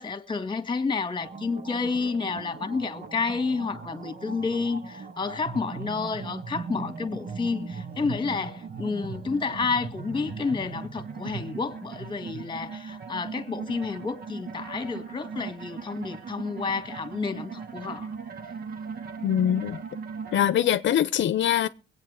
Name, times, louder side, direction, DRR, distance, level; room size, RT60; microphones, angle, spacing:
voice 1, 0.0-18.1, left 4 dB, 25° left, 1.9 m, -30 dB
sound 1, 1.2-20.5, right 5 dB, 50° right, 2.0 m, -39 dB
voice 2, 19.2-19.8 20.3-21.7, left 10 dB, 65° left, 0.7 m, -23 dB
21.5 x 8.9 x 4.9 m
cardioid pair, 90°, 20 cm